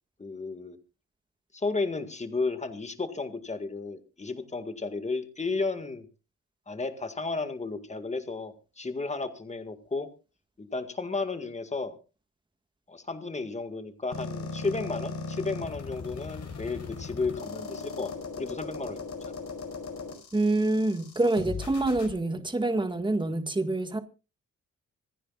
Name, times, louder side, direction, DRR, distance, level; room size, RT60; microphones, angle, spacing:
voice 1, 0.2-0.8 1.5-6.1 6.7-10.1 10.6-12.0 12.9-18.1 18.4-19.3, left 3 dB, 20° left, 1.9 m, -33 dB
sound 1, 14.1-22.1, left 4 dB, 60° left, 5.0 m, -38 dB
voice 2, 20.3-24.0, right 2 dB, 15° right, 1.7 m, -26 dB
26.5 x 10.0 x 2.4 m
cardioid pair, 95°, 31 cm